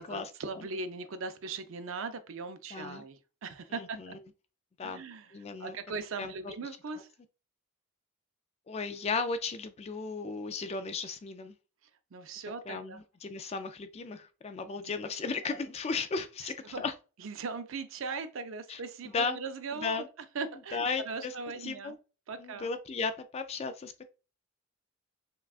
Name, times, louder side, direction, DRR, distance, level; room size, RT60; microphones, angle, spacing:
voice 1, 0.0-4.2 4.8-5.3 5.6-7.1 12.1-13.0 14.7-15.0 16.4-16.8 17.2-20.0 20.3-22.0 22.3-22.7, right 4 dB, 65° right, 0.5 m, -39 dB
voice 2, 2.7-3.0 3.7-4.2 4.8-5.0 5.3-5.8 6.2-6.5 8.7-11.6 12.7-16.9 18.7-18.8 19.1-19.4 19.8-20.1 20.7-21.3 21.6-22.0 22.4-24.0, left 4 dB, 30° left, 0.3 m, -35 dB
5.7 x 2.3 x 2.4 m
head